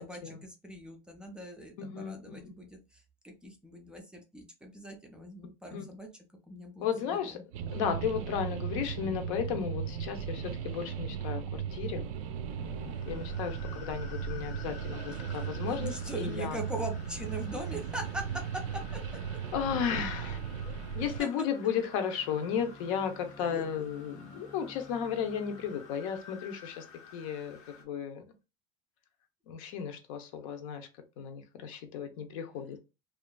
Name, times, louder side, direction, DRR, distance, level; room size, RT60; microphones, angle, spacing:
voice 1, 0.0-6.1 6.5-7.4 15.7-18.2 20.6-20.7 21.2-21.3 23.4-23.6, right 1 dB, 5° right, 0.4 m, -42 dB
voice 2, 1.8-2.5 5.7-5.9 6.8-7.4 7.7-12.1 12.6-16.6 19.5-20.4 20.9-26.8 27.1-28.2 29.5-30.9 31.2-32.8, left 7 dB, 85° left, 0.7 m, -34 dB
sound 1, 7.5-21.2, right 7 dB, 85° right, 0.5 m, -37 dB
sound 2, 12.5-27.8, left 6 dB, 45° left, 0.5 m, -53 dB
Bowed string instrument, 22.1-26.3, left 2 dB, 15° left, 0.8 m, -53 dB
2.7 x 2.4 x 2.2 m
cardioid pair, 165°, 17 cm